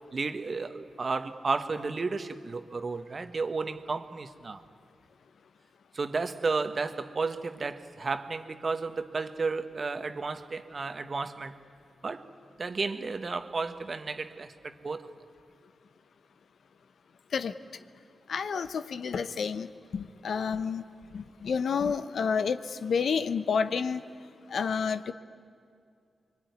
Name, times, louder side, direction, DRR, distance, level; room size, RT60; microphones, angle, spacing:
voice 1, 0.1-4.6 5.9-11.5 12.0-12.3 12.6-15.1, right 4 dB, 50° right, 9 dB, 1.4 m, -33 dB
voice 2, 18.3-20.8 21.1-24.0 24.5-25.1, left 6 dB, 75° left, 12 dB, 0.9 m, -30 dB
25.0 x 23.0 x 9.6 m, 2.3 s
cardioid pair, 50°, 0 cm